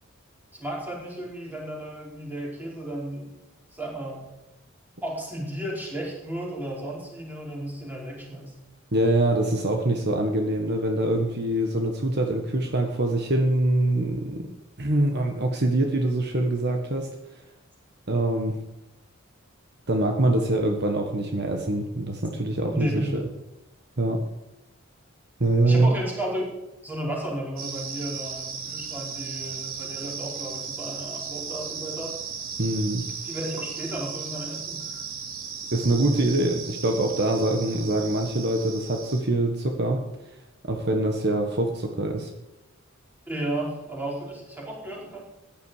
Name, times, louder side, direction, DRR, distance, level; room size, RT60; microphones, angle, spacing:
voice 1, 0.5-3.4 3.7-4.3 5.0-8.6 22.7-23.2 25.6-26.4 26.8-32.2 33.2-35.0 43.3-45.2, right 1 dB, 10° right, -3 dB, 5.0 m, -33 dB
voice 2, 8.9-14.5 14.8-17.1 18.1-18.6 19.9-23.2 24.0-24.2 25.4-26.0 32.6-33.0 35.7-40.0 40.6-42.3, right 1 dB, 55° right, 3 dB, 1.6 m, -24 dB
sound 1, 27.6-39.2, right 6 dB, 75° right, 2.6 m, -36 dB
15.5 x 10.5 x 5.0 m, 1.0 s
head